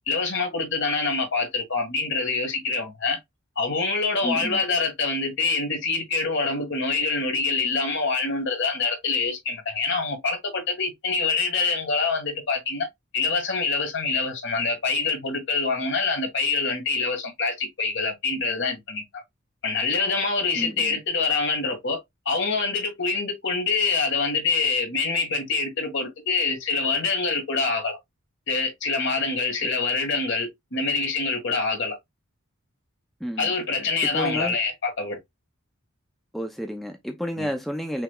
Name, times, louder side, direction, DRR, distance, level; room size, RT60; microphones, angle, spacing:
voice 1, 0.1-3.2 3.6-12.9 13.1-19.2 19.6-22.0 22.3-28.0 28.5-32.0 33.4-35.2 37.4-37.5, left 4 dB, 60° left, 2.0 m, -25 dB
voice 2, 4.2-4.6 20.6-21.0 33.2-33.5 34.0-34.6 36.3-38.0, equal, ahead, 0.6 m, -31 dB
5.8 x 3.3 x 2.4 m
head